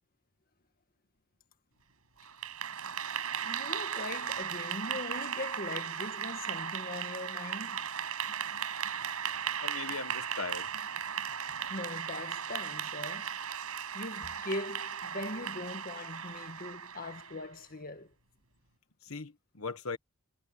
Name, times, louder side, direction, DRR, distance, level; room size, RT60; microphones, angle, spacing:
Clapping / Applause, 2.2-17.5, right 8 dB, 85° right, 5.5 m, -37 dB
voice 1, 3.4-7.8 11.7-13.4 13.9-18.1, left 2 dB, 40° left, 1.8 m, -41 dB
voice 2, 9.6-10.7 19.1-19.3 19.6-20.0, left 4 dB, 70° left, 1.4 m, -38 dB
head